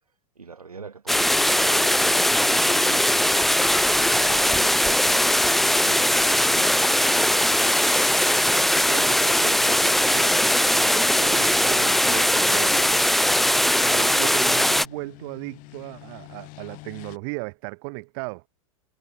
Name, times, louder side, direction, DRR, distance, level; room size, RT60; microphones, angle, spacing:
voice 1, 0.4-3.5 4.0-5.2 5.5-8.2, right 5 dB, 90° right, 2.8 m, -43 dB
sound 1, 1.1-14.9, equal, ahead, 0.4 m, -20 dB
sound 2, 8.4-17.2, left 25 dB, 45° left, 6.2 m, -50 dB
voice 2, 8.8-13.1 13.8-18.4, right 34 dB, 50° right, 2.3 m, -36 dB
hypercardioid pair, 95°, 18 cm